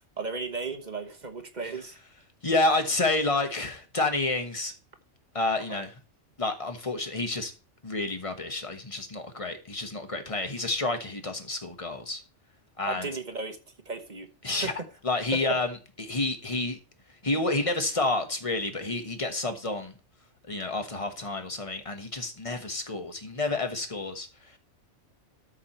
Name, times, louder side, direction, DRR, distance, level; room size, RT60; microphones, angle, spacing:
voice 1, 0.2-1.9 5.6-5.8 12.9-13.6 13.8-14.3 14.6-14.9 15.3-15.6, right 4 dB, 40° right, 1.2 m, -35 dB
voice 2, 2.4-4.7 5.3-5.9 6.4-7.5 7.8-12.2 12.8-13.1 14.4-14.7 15.0-16.8 17.2-19.9 20.5-24.6, left 2 dB, 25° left, 1.4 m, -29 dB
13.0 x 4.9 x 4.4 m
omnidirectional pair, 1.3 m